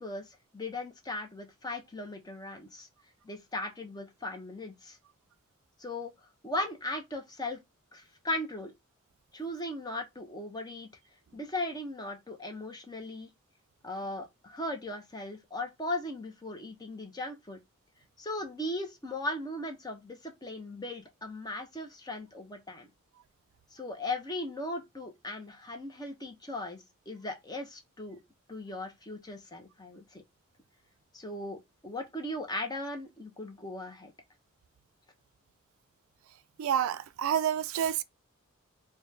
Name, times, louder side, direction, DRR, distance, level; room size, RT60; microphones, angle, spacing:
voice 1, 0.0-2.9 3.2-5.0 5.8-6.1 6.4-7.6 7.9-8.7 9.3-10.9 11.3-13.3 13.8-17.6 18.2-22.9 23.7-28.2 28.5-30.2 31.1-34.1, left 1 dB, 20° left, 0.7 m, -38 dB
voice 2, 36.6-38.0, right 9 dB, 75° right, 0.3 m, -28 dB
4.2 x 2.3 x 3.2 m
head